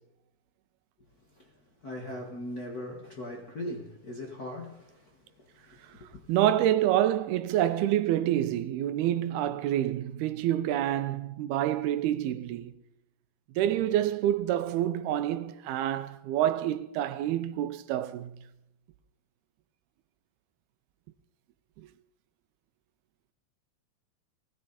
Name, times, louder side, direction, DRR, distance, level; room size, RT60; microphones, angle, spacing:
voice 1, 1.8-5.0 5.7-6.1, left 1 dB, 40° left, 1.5 m, -39 dB
voice 2, 6.3-12.8 13.6-18.3 21.8-21.9, right 12 dB, 90° right, 2.9 m, -27 dB
20.0 x 16.5 x 4.3 m
omnidirectional pair, 4.4 m